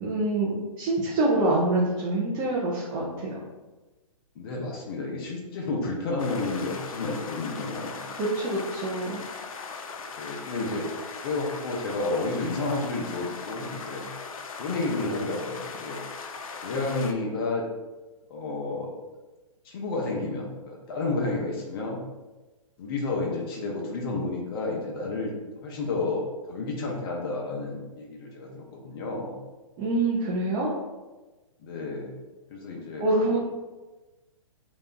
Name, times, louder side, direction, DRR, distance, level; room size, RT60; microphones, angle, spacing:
voice 1, 0.0-3.3 8.2-9.2 29.8-30.7 33.0-33.4, right 2 dB, 25° right, -5 dB, 0.7 m, -25 dB
voice 2, 4.3-8.0 10.2-10.9 11.2-14.1 14.6-16.0 16.6-17.7 18.3-18.9 19.6-22.0 22.8-25.3 25.6-29.4 31.6-32.2 32.5-33.0 33.3-33.4, left 3 dB, 40° left, -1 dB, 0.9 m, -31 dB
sound 1, 6.2-17.1, left 4 dB, 75° left, 0.6 m, -39 dB
3.4 x 3.0 x 3.8 m, 1.2 s
hypercardioid pair, 145°, 18 cm